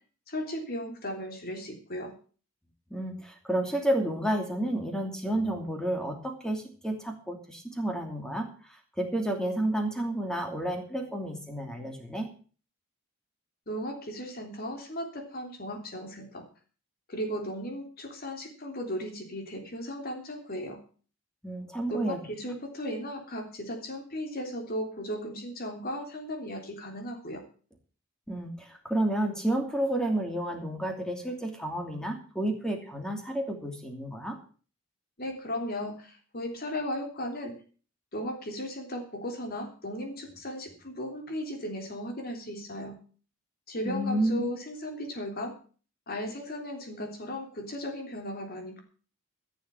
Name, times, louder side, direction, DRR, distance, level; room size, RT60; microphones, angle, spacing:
voice 1, 0.3-2.1 13.7-16.4 17.1-20.8 21.9-27.4 35.2-37.6 38.1-43.0 43.7-45.5 46.1-48.8, equal, 50° left, 4 dB, 3.4 m, -36 dB
voice 2, 2.9-12.3 21.4-22.2 28.3-34.4 43.8-44.4, right 1 dB, 5° left, 3 dB, 2.7 m, -31 dB
14.0 x 7.2 x 7.6 m, 0.40 s
head